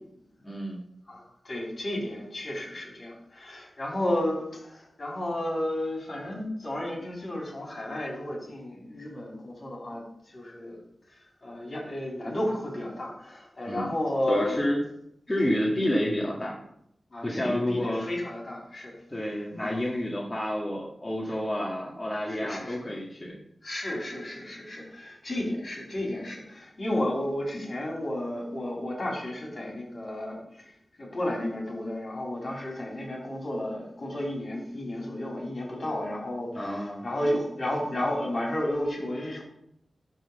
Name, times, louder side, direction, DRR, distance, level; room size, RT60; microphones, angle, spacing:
voice 1, 0.4-0.8 13.7-13.9 14.3-14.8 15.3-16.6 17.2-18.0 19.1-23.4 36.5-37.0, left 1 dB, 25° left, -4 dB, 2.0 m, -29 dB
voice 2, 1.1-10.8 11.4-14.6 15.4-15.6 17.1-18.9 19.6-19.8 21.3-21.4 22.3-22.8 23.6-30.7 31.0-39.4, left 1 dB, 50° left, -3 dB, 3.9 m, -32 dB
11.5 x 3.9 x 6.9 m, 0.74 s
cardioid pair, 55°, 0 cm